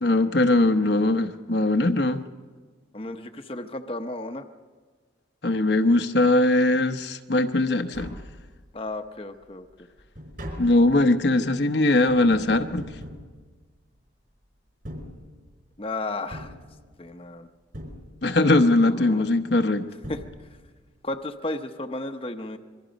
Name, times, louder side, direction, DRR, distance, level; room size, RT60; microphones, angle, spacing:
voice 1, 0.0-2.2 5.4-8.2 10.6-12.8 18.2-19.9, left 2 dB, 60° left, 6 dB, 0.9 m, -21 dB
voice 2, 2.9-4.4 8.7-9.7 15.8-16.5 17.0-17.5 18.9-19.2 20.1-20.5 21.0-22.6, left 2 dB, 30° left, 5 dB, 0.9 m, -33 dB
Tap, 7.9-8.9 9.3-14.1 14.7-15.8 16.3-17.3 17.7-18.6 19.6-19.7 20.0-20.9 21.1-21.2, equal, 50° right, 4.6 m, -42 dB
26.0 x 22.5 x 5.2 m, 1.5 s
head